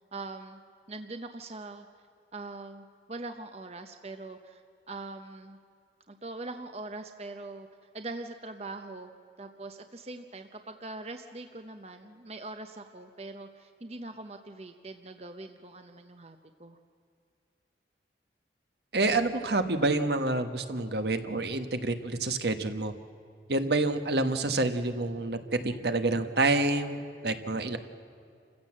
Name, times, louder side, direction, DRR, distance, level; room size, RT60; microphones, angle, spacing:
voice 1, 0.1-0.6 0.9-1.9 2.3-4.6 4.9-5.6 6.1-7.7 7.9-9.1 9.4-16.8, right 2 dB, 35° right, 7 dB, 0.8 m, -42 dB
voice 2, 18.9-22.9 23.5-27.8, right 2 dB, 70° right, 8 dB, 1.3 m, -28 dB
28.0 x 15.5 x 7.6 m, 2.4 s
head